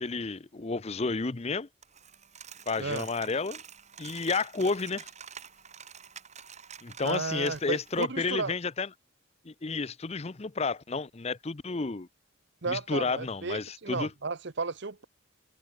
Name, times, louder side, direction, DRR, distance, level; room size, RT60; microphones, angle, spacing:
voice 1, 0.0-1.7 2.7-3.6 4.0-5.1 6.8-8.9 9.4-12.1 12.7-14.1, left 4 dB, 30° left, 0.6 m, -31 dB
Coin (dropping), 1.8-8.0, right 7 dB, 35° right, 5.5 m, -48 dB
voice 2, 7.0-8.5 12.6-15.0, right 4 dB, 55° right, 1.0 m, -33 dB
head